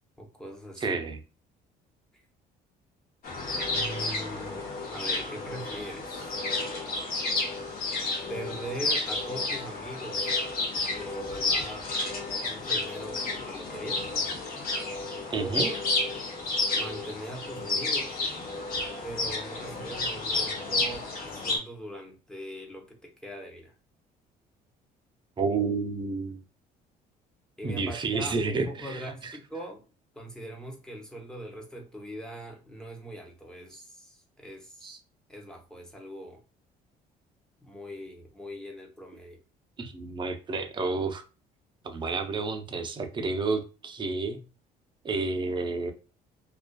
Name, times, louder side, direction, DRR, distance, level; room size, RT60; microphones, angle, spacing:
voice 1, 0.2-1.0 3.7-6.3 8.3-10.4 10.9-11.9 12.4-14.1 15.3-15.8 16.8-18.2 19.0-23.7 27.6-29.9 30.1-35.0 35.3-36.4 37.6-39.4, right 1 dB, 5° left, 0.7 m, -41 dB
voice 2, 0.8-1.2 15.3-15.7 25.4-26.4 27.6-29.4 33.7-33.8 34.8-35.0 39.8-41.2 41.8-44.4 45.0-45.9, right 4 dB, 30° right, 0.5 m, -30 dB
sound 1, 3.2-21.6, left 2 dB, 60° left, 0.9 m, -31 dB
2.4 x 2.3 x 2.2 m
cardioid pair, 110°, 17 cm